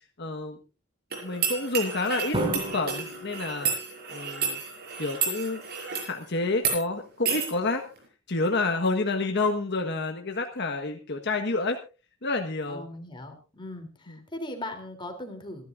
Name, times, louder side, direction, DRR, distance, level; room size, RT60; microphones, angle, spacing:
voice 1, 0.2-0.6 1.2-3.7 4.1-4.6 5.0-5.6 6.0-7.8 8.3-11.8 12.2-12.9 14.1-14.2, left 3 dB, 55° left, 3 dB, 1.5 m, -29 dB
sound 1, 1.1-6.1 6.6-6.8 7.3-7.5, right 6 dB, 50° right, 6.3 m, -31 dB
Drum, 2.3-4.4, right 1 dB, 25° right, 5.5 m, -33 dB
voice 2, 12.7-15.7, left 1 dB, 25° left, 5 dB, 3.4 m, -39 dB
27.0 x 11.5 x 2.6 m, 0.33 s
head